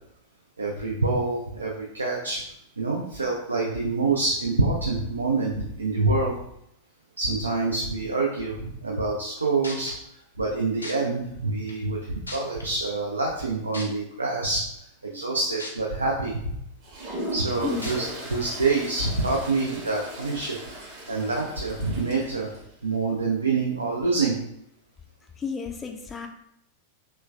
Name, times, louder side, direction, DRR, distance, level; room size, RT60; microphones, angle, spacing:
voice 1, 0.6-2.4 2.8-6.4 7.2-9.9 10.4-14.6 15.0-16.5 17.3-20.6 21.1-22.5 22.8-24.4, right 3 dB, 80° right, -2 dB, 0.4 m, -26 dB
sound 1, 9.3-9.4 9.6-9.9 10.8-10.9 11.7-11.8 12.3-12.6 13.7-13.8 15.6-15.7 16.2-16.3 17.8-17.9 18.7-18.8, left 2 dB, 80° left, 0.5 m, -36 dB
Toilet flush, 16.8-22.6, right 1 dB, 45° right, 1.0 m, -38 dB
voice 2, 25.4-26.3, left 5 dB, 20° left, 3 dB, 0.3 m, -31 dB
3.2 x 3.0 x 2.2 m, 0.76 s
figure-of-eight pair, 90°, 0 cm